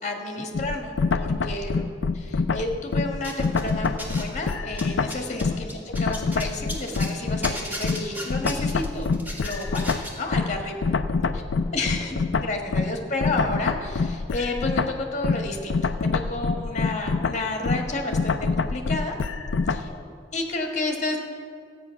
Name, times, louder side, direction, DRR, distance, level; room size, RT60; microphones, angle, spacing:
voice 1, 0.0-1.9 2.3-10.7 11.7-19.2 19.7-19.9 20.3-21.2, left 2 dB, 40° left, 2 dB, 1.5 m, -31 dB
sound 1, 0.5-5.7 5.9-19.9, left 4 dB, 70° left, 0.4 m, -26 dB
sound 2, 3.2-4.4 4.7-7.1 7.4-10.2, equal, 10° right, 1.8 m, -35 dB
voice 2, 5.4-5.8 10.5-12.4 16.5-16.8 17.9-18.1 19.8-20.2, left 1 dB, 20° left, 0 dB, 0.6 m, -45 dB
14.5 x 8.8 x 5.8 m, 2.4 s
head